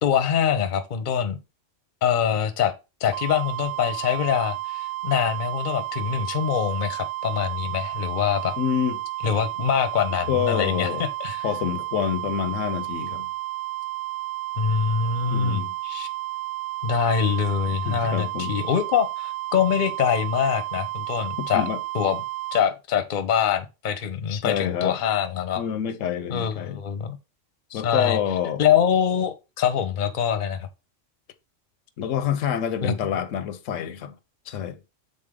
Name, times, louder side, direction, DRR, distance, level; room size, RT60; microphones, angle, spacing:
voice 1, 0.0-1.4 2.0-2.7 3.0-8.5 9.2-11.5 14.6-16.1 16.8-21.7 21.9-22.2 22.5-25.6 26.3-27.2 27.7-28.2 28.6-30.7 32.8-32.9, left 8 dB, 45° left, 0.7 m, -24 dB
sound 1, 3.1-22.6, right 17 dB, 75° right, 0.9 m, -32 dB
voice 2, 8.6-9.0 10.3-11.0 11.4-13.3 15.3-15.7 17.9-18.5 21.4-21.8 24.3-25.0 25.5-26.8 27.7-28.6 32.0-34.1 34.5-34.8, left 9 dB, 85° left, 1.0 m, -27 dB
6.4 x 4.1 x 3.6 m
omnidirectional pair, 1.3 m